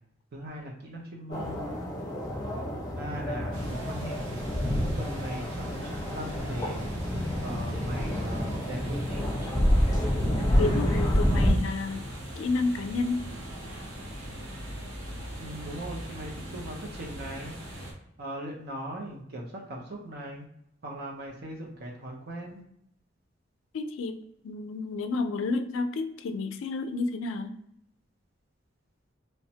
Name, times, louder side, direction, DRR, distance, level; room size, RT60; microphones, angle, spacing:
voice 1, 0.3-1.7 2.5-2.6 2.9-4.2 4.8-6.9 7.4-9.2 15.4-17.9 18.2-20.4 20.8-22.6, right 1 dB, 55° right, -1 dB, 0.5 m, -39 dB
sound 1, 1.3-11.5, equal, 20° left, 0.7 m, -28 dB
sound 2, 3.5-17.9, equal, 85° right, 0.8 m, -40 dB
voice 2, 10.6-12.0 12.4-13.3 23.7-24.2 24.4-27.6, left 3 dB, 80° left, 8 dB, 0.3 m, -30 dB
3.2 x 2.0 x 2.7 m, 0.75 s
head